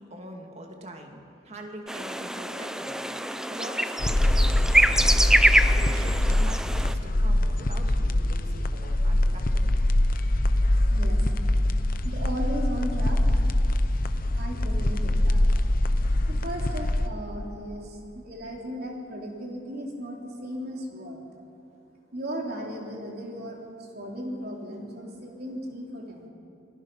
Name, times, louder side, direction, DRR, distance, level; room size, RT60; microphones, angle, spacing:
voice 1, 0.0-5.1 5.6-9.6, right 1 dB, 35° right, 2 dB, 2.3 m, -43 dB
sound 1, 1.9-6.9, right 1 dB, 5° right, 0.5 m, -25 dB
sound 2, 4.0-17.1, left 1 dB, 50° left, 0.9 m, -23 dB
voice 2, 10.9-11.4 12.0-13.5 14.3-15.4 16.3-21.2 22.1-26.3, equal, 55° right, -1 dB, 3.7 m, -36 dB
28.5 x 19.5 x 5.7 m, 2.7 s
head